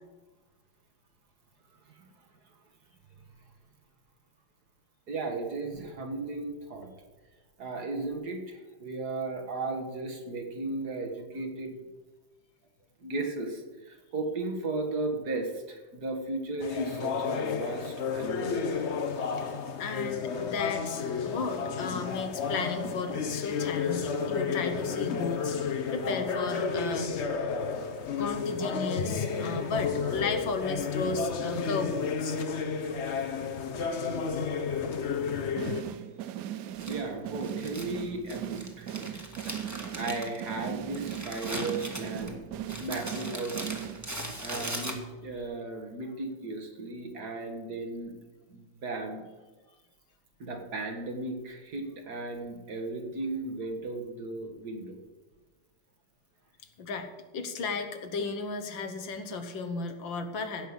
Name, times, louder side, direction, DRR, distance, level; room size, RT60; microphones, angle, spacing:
voice 1, 5.1-6.9 7.6-11.7 13.0-18.7 19.4-19.6 36.9-39.2 39.5-42.5 42.8-43.6 44.4-48.1 48.5-49.2 50.4-55.0, right 2 dB, 55° right, 4 dB, 2.1 m, -35 dB
sound 1, 16.6-35.8, left 5 dB, 50° left, 0.9 m, -32 dB
voice 2, 19.8-27.1 28.2-32.4 33.9-34.0 34.3-34.5 35.0-36.0 56.8-60.7, left 4 dB, 75° left, 8 dB, 1.9 m, -35 dB
Military Snaredrum, 35.6-44.4, right 11 dB, 75° right, 0.8 m, -39 dB
Crumpling crinkling, 36.8-45.4, right 1 dB, 10° right, 1.3 m, -40 dB
15.5 x 5.6 x 8.1 m, 1.2 s
omnidirectional pair, 2.1 m